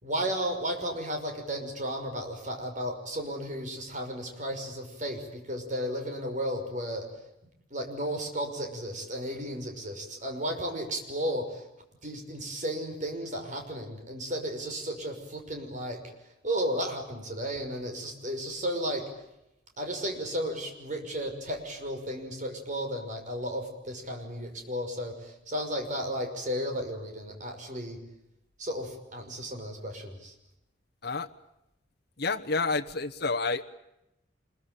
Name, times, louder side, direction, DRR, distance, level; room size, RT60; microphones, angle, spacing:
voice 1, 0.0-7.1 7.7-11.7 12.0-19.1 19.8-28.0 28.6-30.3, equal, 40° right, 4 dB, 6.0 m, -34 dB
voice 2, 32.2-33.6, left 4 dB, 55° left, 5 dB, 1.2 m, -29 dB
27.0 x 22.5 x 9.1 m, 0.87 s
head